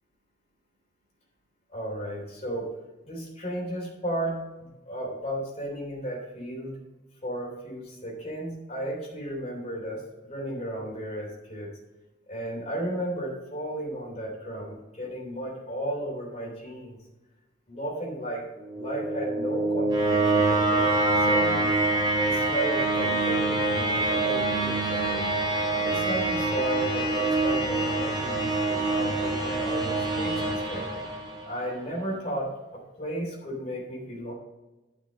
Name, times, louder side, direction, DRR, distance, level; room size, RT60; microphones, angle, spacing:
voice 1, 1.7-2.7 3.0-6.8 7.2-11.7 12.3-17.0 17.7-18.5 18.8-21.0 21.2-21.7 22.2-25.3 25.8-30.8 31.5-34.3, right 1 dB, 35° left, -3 dB, 3.5 m, -34 dB
sound 1, 18.6-31.6, right 2 dB, 25° right, 2.8 m, -25 dB
10.5 x 6.1 x 5.2 m, 1.1 s
head